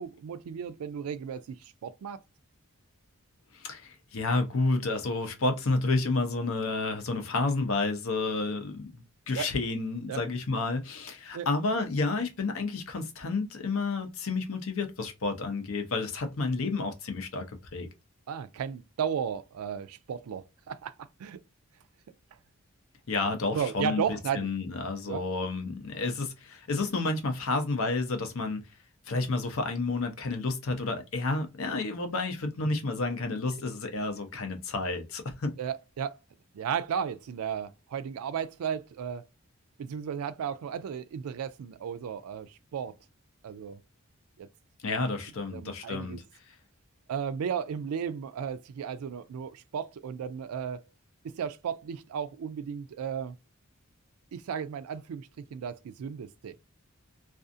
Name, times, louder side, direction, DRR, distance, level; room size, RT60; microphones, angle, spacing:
voice 1, 0.0-2.2 9.3-9.5 10.1-10.2 11.3-11.5 18.3-21.4 23.5-24.5 25.1-25.2 35.6-36.2 36.5-39.3 39.8-43.0 43.4-43.8 44.4-44.5 45.5-46.2 47.1-50.8 51.2-53.4 54.3-56.5, right 7 dB, 80° right, 0.3 m, -34 dB
voice 2, 3.5-17.4 17.7-17.9 23.1-28.6 29.1-35.6 44.8-46.2, left 3 dB, 70° left, 0.6 m, -30 dB
2.5 x 2.3 x 2.5 m
head